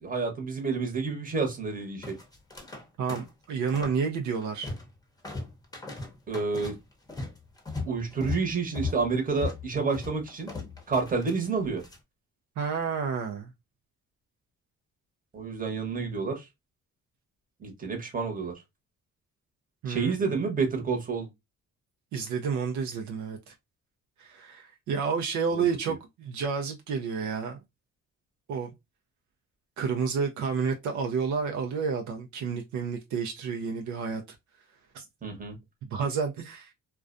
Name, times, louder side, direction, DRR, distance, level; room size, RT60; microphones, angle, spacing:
voice 1, 0.0-2.2 6.3-6.8 7.9-10.5 10.9-11.8 15.3-16.4 17.6-18.5 19.9-21.3 25.5-25.6 35.2-35.6, right 4 dB, 30° right, 1.0 m, -29 dB
sound 1, 2.0-2.8 3.1-4.0 4.3-5.0 5.2-12.0, left 4 dB, 10° left, 0.7 m, -37 dB
voice 2, 3.0-4.7 12.6-13.5 19.8-20.3 22.1-23.5 24.2-27.6 28.5-28.7 29.8-34.4 34.9-35.0 35.8-36.7, right 6 dB, 70° right, 0.5 m, -30 dB
2.3 x 2.2 x 2.4 m
cardioid pair, 90°, 30 cm